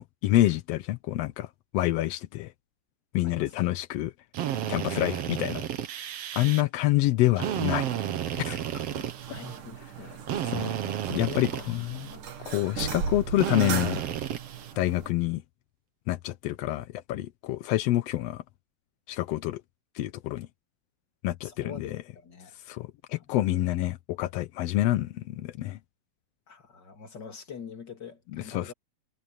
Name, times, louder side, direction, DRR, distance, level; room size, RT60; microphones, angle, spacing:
voice 1, 0.0-1.5 1.7-2.5 3.1-4.1 4.7-5.7 6.3-7.9 8.4-8.6 10.5-12.1 12.4-14.0 14.8-15.4 16.1-18.4 19.1-19.6 19.9-20.5 21.2-22.0 22.7-25.8 28.3-28.7, left 15 dB, 80° left, 1.5 m, -27 dB
voice 2, 3.2-3.8 6.3-6.6 8.7-8.9 9.3-10.9 11.2-12.2 21.4-22.5 23.1-23.3 26.5-28.7, left 5 dB, 35° left, 3.2 m, -45 dB
Drill, 4.3-6.6 7.4-9.6 10.3-12.2 13.4-14.7, right 10 dB, 60° right, 2.0 m, -32 dB
sound 1, 7.4-15.1, right 6 dB, 80° right, 4.0 m, -38 dB
omnidirectional pair, 3.7 m